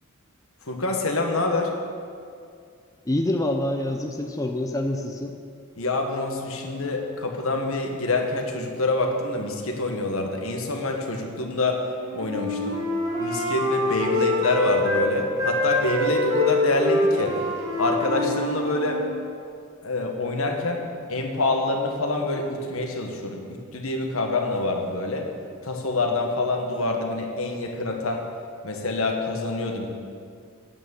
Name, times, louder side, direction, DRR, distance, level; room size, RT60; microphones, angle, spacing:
voice 1, 0.6-1.7 5.8-11.8 12.1-12.8 13.2-17.4 17.8-19.0 19.8-20.8 21.1-25.3 25.6-28.2 28.6-29.9, left 2 dB, 75° left, 2 dB, 1.4 m, -26 dB
voice 2, 3.1-5.3, left 1 dB, 15° left, 4 dB, 0.5 m, -26 dB
Wind instrument woodwind instrument, 12.0-15.1 15.4-19.1, left 1 dB, 15° right, 3.1 m, -25 dB
9.0 x 8.8 x 7.1 m, 2.3 s
head